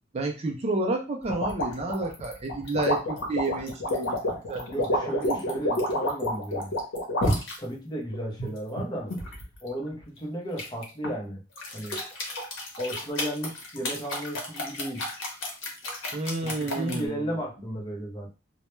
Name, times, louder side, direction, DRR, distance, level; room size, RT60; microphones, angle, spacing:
voice 1, 0.1-5.4 16.1-17.3, right 2 dB, 30° right, 2 dB, 0.4 m, -31 dB
sound 1, 1.3-7.6 8.1-9.4 10.6-11.1 11.6-17.0, left 1 dB, 70° left, 0.8 m, -29 dB
voice 2, 4.7-6.7 7.6-9.1 9.6-11.4 11.7-12.0 12.8-15.1 16.4-18.3, right 1 dB, 20° left, -1 dB, 0.6 m, -34 dB
2.2 x 2.1 x 3.0 m, 0.31 s
head